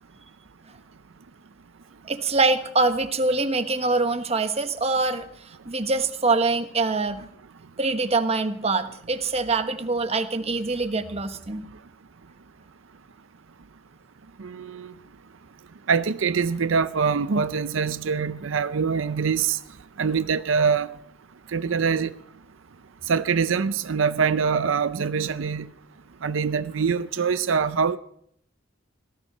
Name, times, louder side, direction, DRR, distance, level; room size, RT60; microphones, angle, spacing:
voice 1, 2.0-7.2 7.8-11.7, right 3 dB, 35° right, 1.2 m, -24 dB
voice 2, 14.4-14.9 15.9-19.6 20.0-20.9 21.5-22.1 23.1-25.7 26.2-28.0, right 5 dB, 85° right, 0.6 m, -24 dB
17.5 x 14.0 x 5.5 m
head